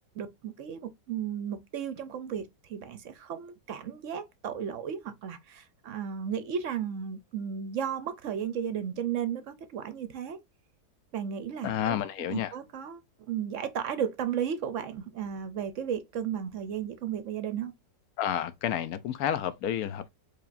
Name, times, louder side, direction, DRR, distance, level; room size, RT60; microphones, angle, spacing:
voice 1, 0.2-10.4 11.1-13.0 13.3-17.7, right 8 dB, 65° right, 0.8 m, -34 dB
voice 2, 11.6-12.5 18.2-20.1, left 10 dB, 70° left, 1.0 m, -30 dB
4.8 x 3.3 x 2.4 m
omnidirectional pair, 1.7 m